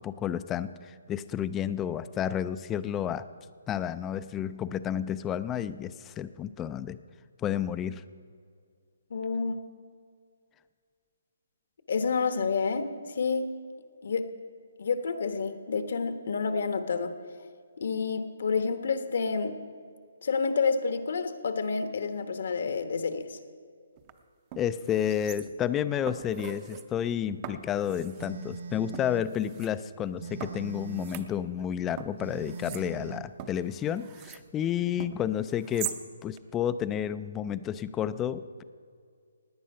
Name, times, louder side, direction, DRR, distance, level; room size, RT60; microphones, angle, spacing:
voice 1, 0.0-3.2 3.7-7.0 7.4-8.0 24.6-36.0 36.2-38.6, left 9 dB, 15° left, 14 dB, 0.4 m, -31 dB
voice 2, 9.1-9.6 11.9-13.5 14.0-14.3 14.8-17.1 17.8-19.6 20.2-23.4, left 5 dB, 65° left, 9 dB, 1.1 m, -29 dB
sound 1, 24.0-24.1 24.5-25.7 26.1-26.9 27.4-28.3 28.9-29.7 30.4-31.7 32.0-34.5 35.0-36.0 36.4-36.5, right 10 dB, 25° right, 0.7 m, -42 dB
Telephone, 28.2-29.3 30.2-31.3 32.2-33.3, right 5 dB, 55° right, 0.8 m, -41 dB
17.5 x 9.6 x 5.5 m, 2.2 s
hypercardioid pair, 165°, 0 cm